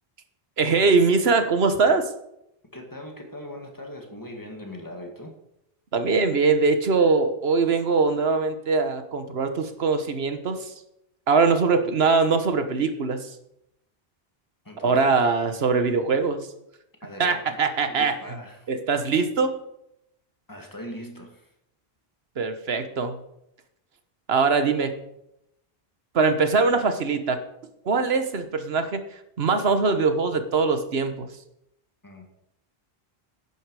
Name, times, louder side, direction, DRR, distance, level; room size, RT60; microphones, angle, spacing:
voice 1, 0.6-2.1 5.9-10.7 11.3-13.3 14.8-16.4 17.2-18.1 18.7-19.5 22.4-23.2 24.3-25.0 26.1-27.4 27.8-29.0 29.4-31.3, right 4 dB, 80° right, 9 dB, 1.4 m, -22 dB
voice 2, 2.7-5.3 14.6-15.2 17.0-17.6 17.9-18.7 20.5-21.5 32.0-32.3, left 1 dB, 20° left, 2 dB, 2.1 m, -40 dB
12.0 x 9.9 x 4.8 m, 0.81 s
omnidirectional pair, 1.0 m